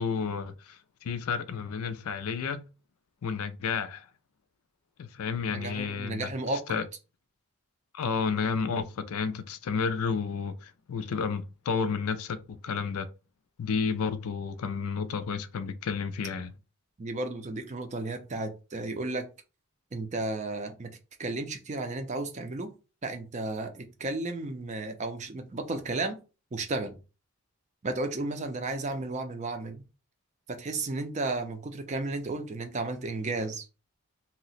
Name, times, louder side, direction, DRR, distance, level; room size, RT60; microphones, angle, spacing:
voice 1, 0.0-2.6 3.2-4.1 5.0-6.3 6.7-6.8 7.9-13.1 13.6-16.5, left 5 dB, 75° left, 0.4 m, -31 dB
voice 2, 5.5-6.8 17.0-19.3 19.9-20.9 21.2-22.7 23.0-26.2 26.5-27.0 27.8-29.8 30.5-33.7, right 2 dB, 30° right, 0.4 m, -33 dB
2.8 x 2.1 x 4.0 m
head